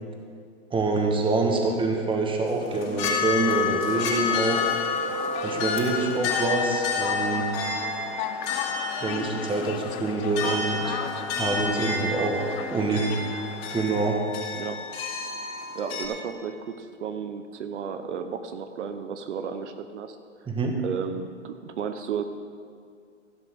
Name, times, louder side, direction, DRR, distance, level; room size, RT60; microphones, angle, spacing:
voice 1, 0.7-4.7 5.4-7.4 9.0-11.0 11.4-13.1 13.7-14.2 20.5-20.7, right 3 dB, 15° right, 1 dB, 1.9 m, -26 dB
sound 1, 2.5-16.1, left 4 dB, 55° left, 4.0 m, -30 dB
sound 2, 3.9-13.8, left 10 dB, 20° left, 0.3 m, -37 dB
voice 2, 14.5-14.9 15.7-20.2 20.8-22.2, right 7 dB, 70° right, 8 dB, 1.0 m, -33 dB
15.5 x 6.7 x 6.6 m, 2.2 s
hypercardioid pair, 115°, 36 cm